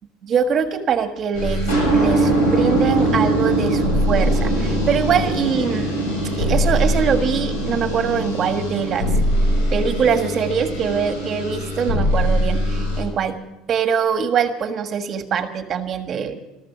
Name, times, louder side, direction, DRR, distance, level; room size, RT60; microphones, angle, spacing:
voice 1, 0.2-5.9 6.4-9.1 9.7-13.4 13.7-16.4, right 7 dB, 35° right, 7 dB, 1.5 m, -23 dB
sound 1, 1.3-13.0, right 1 dB, 80° left, 7.9 m, -21 dB
14.0 x 13.0 x 7.1 m, 0.95 s
cardioid pair, 130°, 0 cm